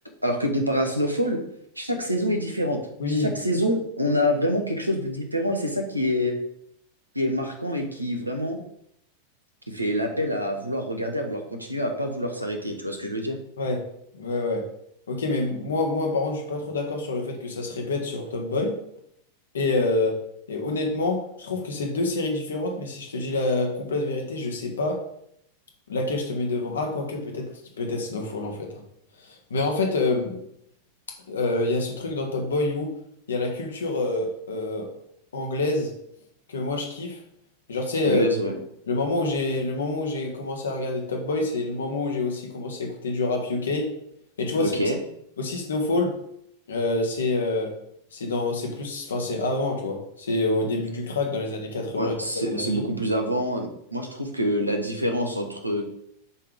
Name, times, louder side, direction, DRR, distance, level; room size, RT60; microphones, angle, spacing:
voice 1, 0.2-1.4 1.8-2.8 3.1-6.3 7.1-8.6 9.7-13.4 38.0-38.6 44.6-45.0 52.0-55.8, equal, 85° right, 4 dB, 1.1 m, -26 dB
voice 2, 3.0-3.3 13.6-13.8 14.1-14.7 15.1-18.8 19.5-20.2 20.5-25.0 25.9-27.5 27.8-28.7 29.2-30.4 31.3-32.9 33.3-34.9 35.3-35.9 36.5-37.2 37.7-38.3 38.9-43.9 44.4-44.7 45.4-46.1 46.7-47.7 48.1-52.1 52.5-52.8, left 2 dB, 70° left, 2 dB, 1.4 m, -27 dB
6.9 x 3.7 x 5.1 m, 0.73 s
figure-of-eight pair, 90°, 0 cm